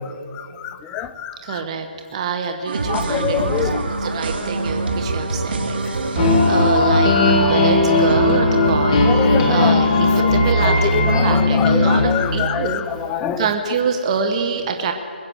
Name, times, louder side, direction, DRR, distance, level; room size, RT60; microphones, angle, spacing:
voice 1, 0.6-1.6 2.9-3.8 6.8-6.9 9.0-9.9 10.1-13.8, left 9 dB, 15° left, 11 dB, 0.4 m, -26 dB
voice 2, 1.4-9.1 9.5-12.8 13.4-14.9, right 6 dB, 30° right, 5 dB, 1.0 m, -26 dB
sound 1, 2.7-8.3, right 3 dB, 65° right, 2.1 m, -25 dB
sound 2, 6.2-12.7, left 2 dB, 30° left, 2.1 m, -17 dB
20.5 x 7.5 x 7.8 m, 2.4 s
figure-of-eight pair, 155°, 6 cm